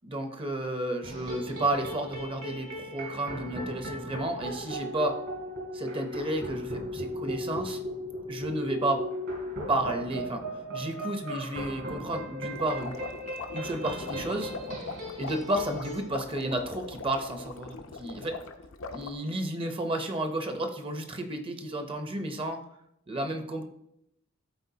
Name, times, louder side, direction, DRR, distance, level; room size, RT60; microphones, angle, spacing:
voice 1, 0.0-5.2 5.7-7.8 8.3-9.0 9.7-10.4 10.7-13.0 13.5-14.5 15.2-18.4 18.9-22.6 23.1-23.6, right 1 dB, 25° right, 6 dB, 0.7 m, -32 dB
sound 1, 1.0-16.0, equal, 65° right, 2.6 m, -37 dB
sound 2, 12.5-19.1, left 3 dB, 85° left, 0.7 m, -41 dB
12.0 x 4.2 x 2.8 m, 0.79 s
head